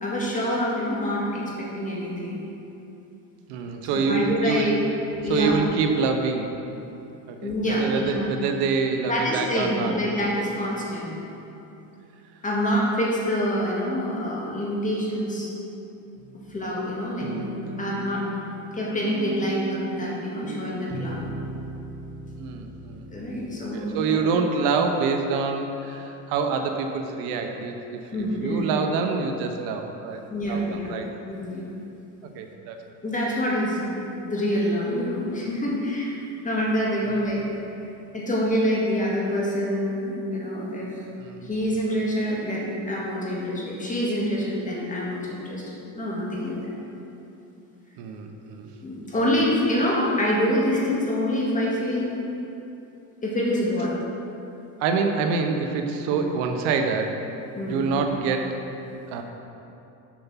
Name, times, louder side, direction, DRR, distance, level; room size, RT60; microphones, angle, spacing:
voice 1, 0.0-2.4 3.9-4.8 5.2-5.5 7.4-8.3 9.1-11.1 12.4-15.5 16.5-17.3 17.8-18.3 18.7-21.2 23.1-24.2 28.1-28.7 30.3-30.9 31.2-31.6 33.0-36.2 36.4-37.4 38.1-41.0 41.4-46.8 48.8-52.1 53.2-53.9 56.1-56.3 57.5-58.0, equal, 20° left, -4 dB, 1.9 m, -26 dB
voice 2, 3.5-4.7 5.3-6.6 7.3-9.9 22.4-23.5 23.7-31.1 32.3-32.8 41.2-41.5 48.0-48.7 49.2-49.3 54.8-57.2 57.7-58.6 59.1-59.2, right 5 dB, 80° right, 5 dB, 0.9 m, -26 dB
sound 1, 16.2-16.8 17.2-24.1, right 2 dB, 35° right, 0.7 m, -37 dB
7.3 x 5.9 x 5.7 m, 2.8 s
cardioid pair, 130°, 40 cm